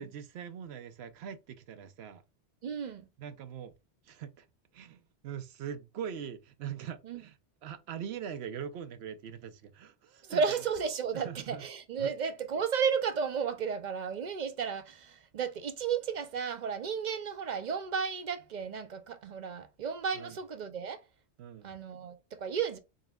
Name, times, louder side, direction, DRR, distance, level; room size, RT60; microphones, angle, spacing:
voice 1, 0.0-2.2 3.2-3.7 4.0-4.5 4.7-7.4 7.6-10.4 11.1-11.6 12.0-12.1 20.1-20.4 21.4-21.7, right 8 dB, 80° right, 0.8 m, -42 dB
voice 2, 2.6-3.1 7.1-7.2 10.3-21.0 21.6-22.8, right 6 dB, 55° right, 0.6 m, -33 dB
3.9 x 3.8 x 2.3 m
omnidirectional pair, 1.1 m